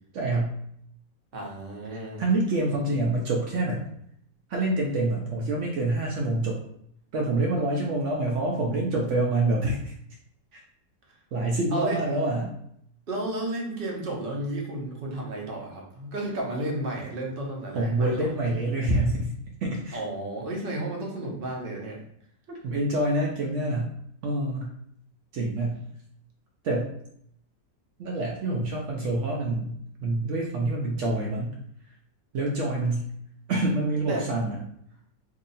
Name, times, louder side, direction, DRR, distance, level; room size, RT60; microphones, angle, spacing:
voice 1, 0.1-0.5 1.9-3.9 4.5-6.6 7.1-9.9 10.5-10.6 11.3-12.5 17.7-20.0 22.5-23.9 24.2-24.7 25.3-25.8 26.6-26.9 28.0-29.7 30.0-31.5 32.3-33.1 33.5-34.6, right 2 dB, 80° right, -1 dB, 0.6 m, -26 dB
voice 2, 1.3-2.2 11.7-12.0 13.1-18.3 19.9-22.0 34.1-34.5, right 1 dB, 45° right, -1 dB, 0.7 m, -33 dB
2.7 x 2.7 x 4.0 m, 0.70 s
omnidirectional pair, 2.0 m